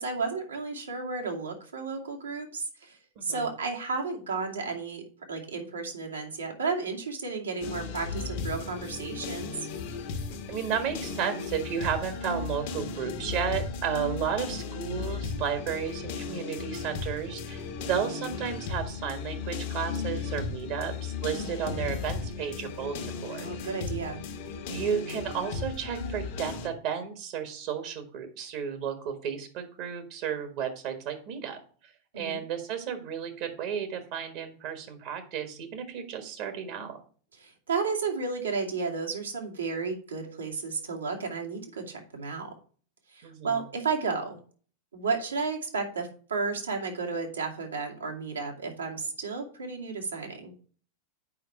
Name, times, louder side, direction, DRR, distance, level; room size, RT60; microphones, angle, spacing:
voice 1, 0.0-5.0 5.3-9.6 21.3-21.6 23.4-24.2 32.1-32.4 37.4-42.5 43.1-44.4 44.9-50.5, right 4 dB, 75° right, 1 dB, 2.3 m, -33 dB
voice 2, 3.1-3.5 10.5-23.7 24.7-37.0 43.2-43.6, right 8 dB, 45° right, 7 dB, 1.6 m, -33 dB
sound 1, 7.6-26.7, left 5 dB, 50° left, 1.3 m, -36 dB
8.7 x 5.4 x 4.5 m, 0.43 s
figure-of-eight pair, 90°, 0 cm